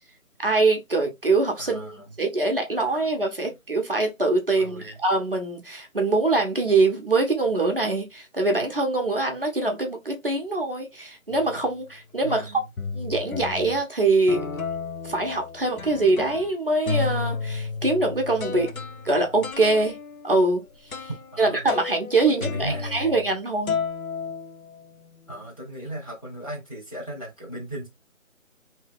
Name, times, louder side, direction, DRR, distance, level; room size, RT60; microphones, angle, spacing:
voice 1, 0.4-12.6 12.9-14.4 15.0-18.7 19.0-20.0 20.2-20.6 21.0-21.1 21.4-23.8, right 2 dB, 40° right, 0.7 m, -23 dB
voice 2, 1.6-2.1 2.8-3.1 4.6-5.0 12.2-12.6 21.3-21.7 22.2-23.1 25.3-27.9, right 1 dB, 25° left, 0.8 m, -37 dB
sound 1, 11.3-11.7 12.3-12.4 12.8-13.8 14.3-16.5 16.9-23.4 23.7-25.1, left 5 dB, 85° left, 0.8 m, -33 dB
2.8 x 2.7 x 3.4 m
figure-of-eight pair, 170°, 41 cm